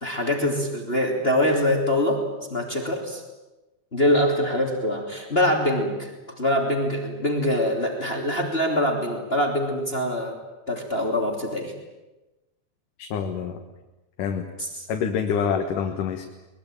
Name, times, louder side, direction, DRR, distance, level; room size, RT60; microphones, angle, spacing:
voice 1, 0.0-2.2 2.5-3.2 3.9-10.4 10.7-11.7 14.6-14.9, left 1 dB, 20° left, 2 dB, 3.0 m, -24 dB
voice 2, 13.0-13.6 14.2-14.5 14.9-16.2, left 7 dB, 80° left, 4 dB, 3.1 m, -26 dB
23.0 x 21.5 x 9.1 m, 1.1 s
omnidirectional pair, 3.7 m